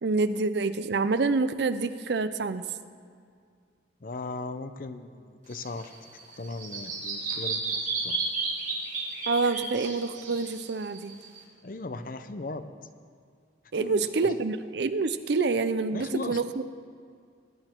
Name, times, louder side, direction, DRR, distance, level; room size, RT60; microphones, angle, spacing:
voice 1, 0.0-2.6 9.3-11.1 13.7-16.6, right 3 dB, 65° right, 12 dB, 0.5 m, -27 dB
voice 2, 4.0-6.0 6.3-8.2 11.6-12.7 13.7-14.1 15.9-16.4, left 2 dB, 50° left, 10 dB, 0.6 m, -37 dB
Bird vocalization bird call bird song, 5.5-11.4, right 3 dB, 45° right, 2.3 m, -33 dB
20.0 x 9.9 x 4.5 m, 2.2 s
head